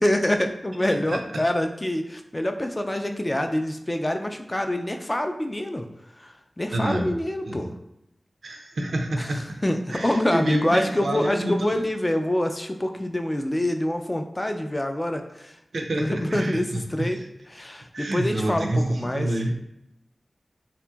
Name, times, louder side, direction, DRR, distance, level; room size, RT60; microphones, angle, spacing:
voice 1, 0.0-5.9 6.2-7.7 9.2-15.5 16.0-17.2 17.5-19.4, left 1 dB, 25° left, 5 dB, 0.3 m, -26 dB
voice 2, 0.9-1.4 6.7-7.1 7.5-7.7 8.4-9.5 9.9-11.7 15.7-16.8 17.2-17.3 17.9-19.5, right 1 dB, 85° right, 2 dB, 0.4 m, -28 dB
2.8 x 2.5 x 2.3 m, 0.86 s
cardioid pair, 40°, 0 cm